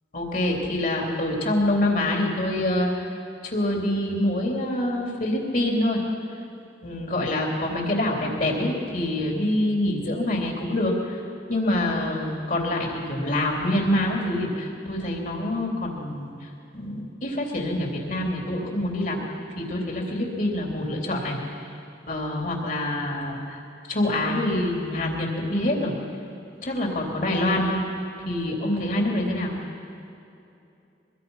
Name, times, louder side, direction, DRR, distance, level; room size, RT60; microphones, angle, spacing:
voice 1, 0.1-3.2 3.4-6.0 6.8-11.2 11.5-16.3 16.7-19.2 19.6-21.4 22.1-23.6 23.9-25.9 26.6-27.8 28.2-29.6, left 1 dB, 45° left, 0 dB, 3.5 m, -26 dB
23.5 x 23.0 x 5.7 m, 2.6 s
head